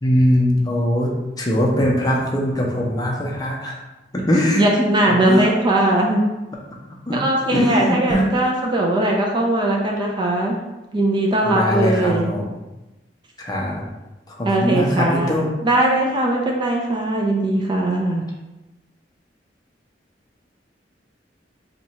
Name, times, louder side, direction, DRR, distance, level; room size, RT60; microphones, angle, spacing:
voice 1, 0.0-3.8 4.1-4.6 5.1-5.5 7.1-7.2 7.5-8.3 11.5-12.5 13.4-13.8 14.3-15.5, equal, 20° left, -2 dB, 0.6 m, -21 dB
voice 2, 4.6-6.2 7.1-10.6 10.9-12.3 14.4-15.4 15.6-18.2, right 1 dB, 25° right, -1 dB, 0.4 m, -19 dB
2.9 x 2.3 x 4.1 m, 1.0 s
head